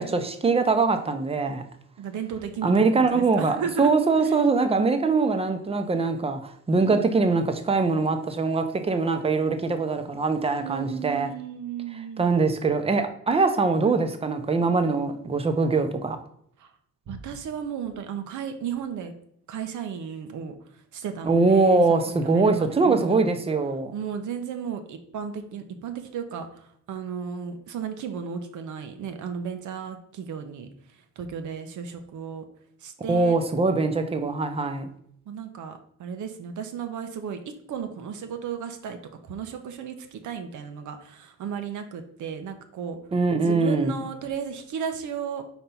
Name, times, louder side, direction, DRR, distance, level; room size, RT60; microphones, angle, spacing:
voice 1, 0.0-1.6 2.6-11.3 12.2-16.2 21.2-23.9 33.1-34.9 43.1-44.0, right 3 dB, 20° right, 8 dB, 0.6 m, -22 dB
voice 2, 2.0-3.9 6.8-7.1 10.6-12.4 16.6-16.7 17.1-19.1 19.5-20.5 20.9-23.2 23.9-30.7 31.2-32.4 32.8-33.4 35.3-39.0 39.2-43.0 43.4-45.4, right 7 dB, 90° right, 7 dB, 0.9 m, -34 dB
4.5 x 4.3 x 5.4 m, 0.67 s
wide cardioid pair, 170°, 29 cm